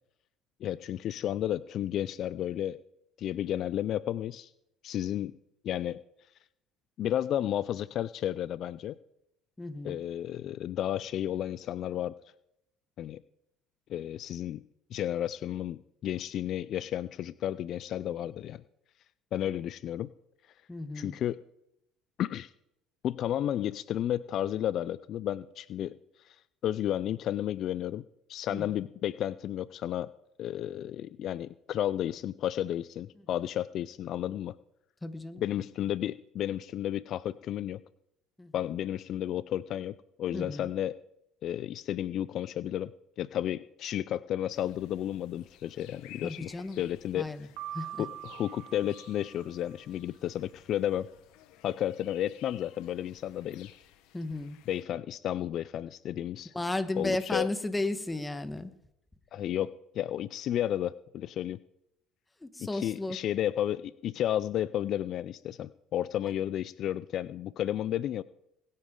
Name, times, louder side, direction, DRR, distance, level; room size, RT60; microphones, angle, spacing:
voice 1, 0.6-2.8 3.2-4.5 4.8-5.3 5.6-6.0 7.0-9.0 9.8-12.1 13.0-13.2 13.9-14.6 14.9-18.6 19.3-20.1 20.9-21.4 22.2-22.5 23.0-25.9 26.2-26.4 26.6-28.0 28.3-30.1 30.4-34.6 35.4-37.8 38.5-41.0 41.4-42.9 43.2-47.3 48.0-51.1 51.6-53.7 54.7-56.5 56.9-57.5 59.3-61.6 62.6-68.2, left 11 dB, 60° left, 18 dB, 0.4 m, -32 dB
voice 2, 9.6-10.0 20.7-21.1 28.5-28.6 35.0-35.4 38.4-38.5 40.3-40.7 46.2-46.8 47.1-47.5 47.7-48.0 54.1-54.6 56.5-58.7 62.4-63.2, left 2 dB, 15° left, 11 dB, 1.3 m, -34 dB
sound 1, 44.5-54.8, left 13 dB, 75° left, 1.1 m, -55 dB
Piano, 47.6-49.7, right 12 dB, 75° right, 1.5 m, -43 dB
20.5 x 9.7 x 3.8 m, 0.80 s
supercardioid pair, 90°, 0 cm